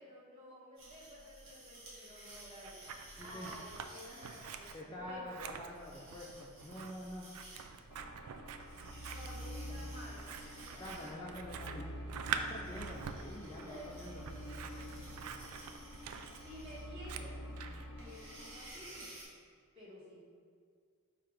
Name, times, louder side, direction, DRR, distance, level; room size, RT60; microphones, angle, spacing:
voice 1, 0.0-6.0 6.8-6.9 8.7-12.6 13.4-15.6 16.4-17.4 17.9-19.1 19.7-20.2, equal, 25° right, -7 dB, 1.2 m, -53 dB
sound 1, 0.8-19.2, right 1 dB, 60° right, 1.3 m, -55 dB
Scissors, 2.3-3.9 4.2-17.9, right 7 dB, 80° right, 0.3 m, -46 dB
voice 2, 3.2-3.5 4.7-7.3 10.8-11.9 12.3-14.2, left 1 dB, 15° left, -4 dB, 0.3 m, -46 dB
sound 2, 7.9-18.7, equal, 90° left, 0.9 m, -47 dB
4.4 x 2.4 x 4.8 m, 2.1 s
head